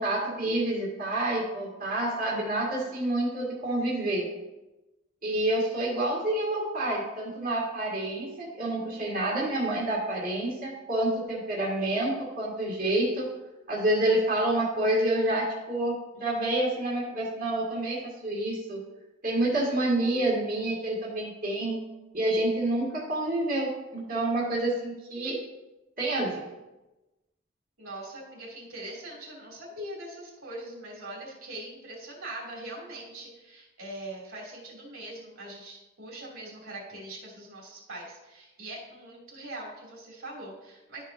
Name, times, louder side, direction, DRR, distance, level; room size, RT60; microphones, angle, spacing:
voice 1, 0.0-4.2 5.2-13.3 13.7-18.8 19.2-21.8 22.1-25.4 26.0-26.4, right 1 dB, 45° right, -5 dB, 1.8 m, -28 dB
voice 2, 27.8-41.0, right 1 dB, 90° right, -3 dB, 2.8 m, -42 dB
12.5 x 5.0 x 2.7 m, 1.0 s
head